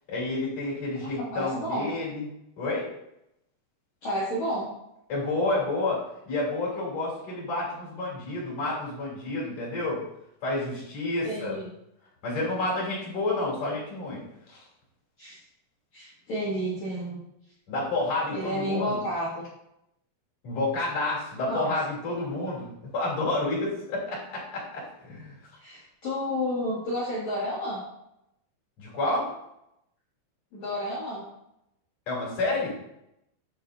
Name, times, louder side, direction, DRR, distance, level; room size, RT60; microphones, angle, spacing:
voice 1, 0.1-2.2 2.6-2.9 5.1-10.0 10.4-11.5 12.2-14.2 14.5-14.6 17.7-19.0 20.4-22.7 22.9-24.6 25.0-25.3 28.8-29.3 32.1-32.7, left 2 dB, 40° left, -5 dB, 3.2 m, -29 dB
voice 2, 1.3-1.9 4.0-4.7 11.2-11.7 15.2-15.4 15.9-17.2 18.3-19.4 21.5-21.7 25.6-27.8 30.5-31.3, equal, 70° left, -8 dB, 1.7 m, -31 dB
8.4 x 6.5 x 2.6 m, 0.81 s
omnidirectional pair, 5.8 m